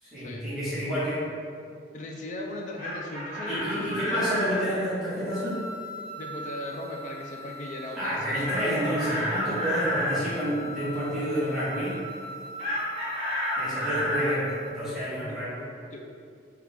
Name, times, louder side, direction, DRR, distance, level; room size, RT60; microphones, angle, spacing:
voice 1, 0.0-1.2 3.5-5.6 7.9-12.0 13.6-15.6, equal, 5° right, -14 dB, 1.1 m, -29 dB
voice 2, 1.7-4.3 6.2-8.8 15.2-15.4 15.9-16.1, left 1 dB, 40° left, 1 dB, 0.3 m, -38 dB
Chicken rooster, 2.5-4.6 8.4-10.2 12.6-14.4, left 1 dB, 30° right, 1.0 m, -30 dB
sound 1, 5.3-14.9, left 1 dB, 60° right, 0.4 m, -41 dB
4.5 x 2.3 x 3.5 m, 2.3 s
head